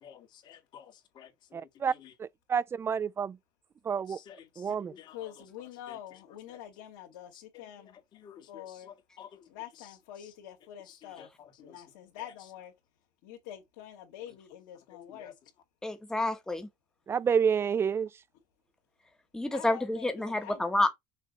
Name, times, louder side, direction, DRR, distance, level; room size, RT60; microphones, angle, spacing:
voice 1, 0.0-2.1 4.1-5.3 5.9-6.0 7.3-7.6 8.1-9.4 9.8-9.9 10.9-11.7 12.2-12.3 15.1-15.3, left 9 dB, 45° left, 2.0 m, -52 dB
voice 2, 1.5-1.9 2.2-3.4 3.9-4.2 4.6-4.9 17.1-18.1, right 7 dB, 25° right, 0.3 m, -29 dB
voice 3, 5.1-8.0 8.5-8.9 9.5-11.3 11.6-12.7 13.2-15.3 19.5-20.6, left 11 dB, 85° left, 2.1 m, -46 dB
voice 4, 15.8-16.7 19.3-20.9, left 2 dB, 5° left, 1.3 m, -29 dB
6.5 x 2.8 x 5.3 m
supercardioid pair, 115°, 10 cm